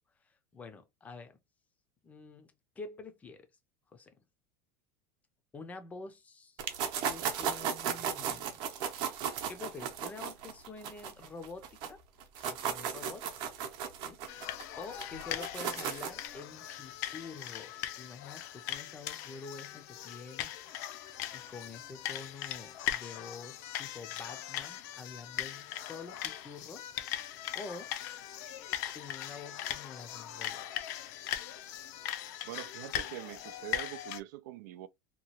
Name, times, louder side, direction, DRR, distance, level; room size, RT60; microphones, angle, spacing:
voice 1, 0.5-1.4 2.0-3.5 3.9-4.2 5.5-6.6 7.0-9.0 9.5-12.0 12.3-13.3 14.0-14.2 14.8-20.5 21.3-26.9 27.5-27.9 28.9-30.7, left 4 dB, 15° left, 0.5 m, -47 dB
sound 1, 6.6-11.9 12.2-16.3, right 7 dB, 50° right, 0.7 m, -35 dB
sound 2, 14.3-34.2, left 12 dB, 65° left, 0.5 m, -40 dB
voice 2, 32.4-34.9, right 15 dB, 80° right, 0.4 m, -44 dB
2.9 x 2.3 x 2.9 m
supercardioid pair, 160°, 9 cm